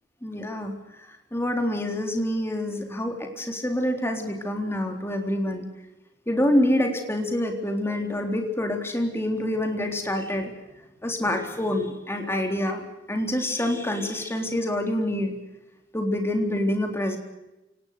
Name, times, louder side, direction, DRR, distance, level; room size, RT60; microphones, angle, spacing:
voice 1, 0.2-0.7 1.3-5.7 6.3-10.5 11.0-12.8 13.1-15.3 15.9-17.2, left 1 dB, 15° left, 4 dB, 3.7 m, -26 dB
28.0 x 18.5 x 6.7 m, 0.97 s
head